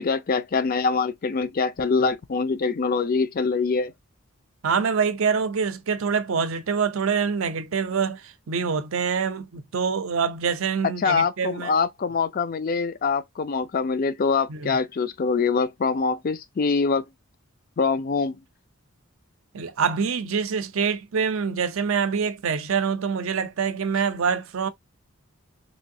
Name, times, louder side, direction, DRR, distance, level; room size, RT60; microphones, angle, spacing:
voice 1, 0.0-3.9 11.0-17.0 17.8-18.4, left 4 dB, 40° left, 0.4 m, -24 dB
voice 2, 4.6-11.7 14.5-14.7 19.5-24.7, right 6 dB, 65° right, 0.5 m, -25 dB
3.1 x 2.7 x 2.6 m
head